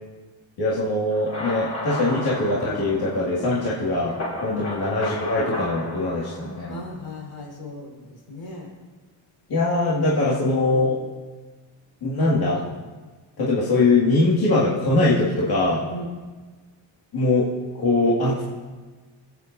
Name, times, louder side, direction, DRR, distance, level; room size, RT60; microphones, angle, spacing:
voice 1, 0.6-4.1 4.4-6.8 9.5-11.0 12.0-12.6 13.4-15.8 17.1-17.5 17.7-18.4, left 2 dB, 60° left, -7 dB, 2.2 m, -22 dB
sound 1, 1.1-6.9, left 1 dB, 40° left, 3.4 m, -34 dB
voice 2, 6.7-8.7 15.9-16.1, left 3 dB, 80° left, -3 dB, 4.3 m, -36 dB
22.0 x 8.5 x 2.7 m, 1.3 s
cardioid pair, 120°, 43 cm